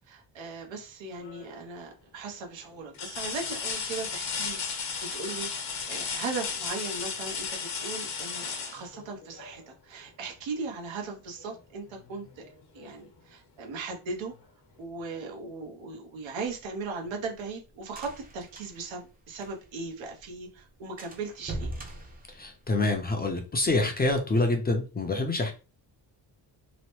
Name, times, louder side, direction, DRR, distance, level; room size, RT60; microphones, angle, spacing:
voice 1, 0.1-12.4 12.7-14.3 14.8-21.7, right 4 dB, 85° right, 1 dB, 1.0 m, -38 dB
sound 1, 1.2-1.7 2.2-2.3 2.9-9.6 11.4-11.5 12.0-13.0 14.3-14.4, left 5 dB, 60° left, 1.0 m, -35 dB
sound 2, 16.5-19.9 20.2-20.3 20.6-20.7 21.0-23.0, right 2 dB, 20° right, 0.6 m, -41 dB
voice 2, 22.3-25.5, left 2 dB, 20° left, 3 dB, 0.5 m, -26 dB
3.0 x 2.1 x 3.0 m, 0.32 s
cardioid pair, 115°, 45 cm